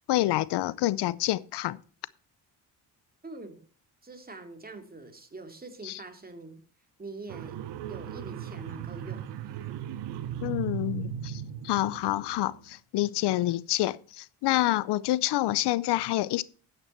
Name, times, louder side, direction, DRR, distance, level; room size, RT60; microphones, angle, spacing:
voice 1, 0.1-1.8 5.8-6.0 10.4-16.4, left 16 dB, 75° left, 0.6 m, -27 dB
voice 2, 3.2-3.6 4.0-6.6 7.0-7.6 7.9-9.3, right 3 dB, 20° right, 2.4 m, -44 dB
sound 1, 7.3-12.6, right 9 dB, 85° right, 1.1 m, -37 dB
10.0 x 8.9 x 4.4 m
cardioid pair, 85°, 41 cm